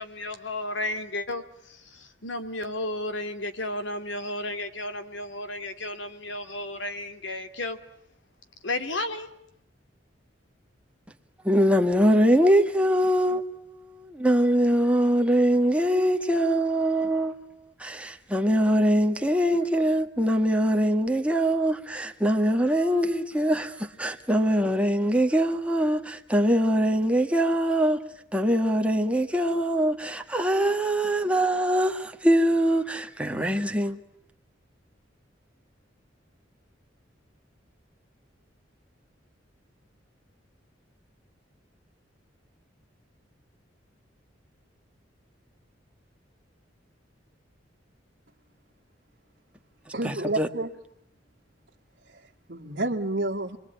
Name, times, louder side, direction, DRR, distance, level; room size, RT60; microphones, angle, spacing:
voice 1, 0.0-7.8 8.6-9.3, left 2 dB, 80° left, 2.6 m, -33 dB
voice 2, 11.4-17.4 17.8-28.0 28.3-34.0 50.0-50.5, equal, 5° right, 1.7 m, -23 dB
voice 3, 49.9-50.7 52.1-53.6, right 2 dB, 60° right, 2.0 m, -30 dB
28.0 x 22.5 x 9.2 m
head